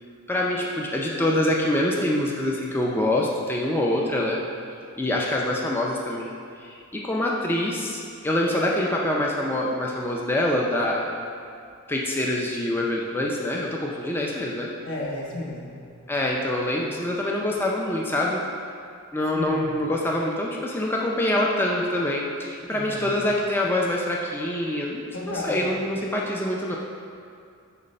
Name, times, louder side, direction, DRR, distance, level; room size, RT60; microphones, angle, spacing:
voice 1, 0.3-4.4 5.0-11.2 11.9-14.7 16.1-18.4 19.1-26.8, left 1 dB, 10° left, -2 dB, 0.4 m, -25 dB
voice 2, 14.8-15.8 19.3-19.7 22.7-23.2 25.1-25.8, left 1 dB, 55° left, -2 dB, 1.1 m, -33 dB
8.0 x 3.2 x 5.4 m, 2.4 s
head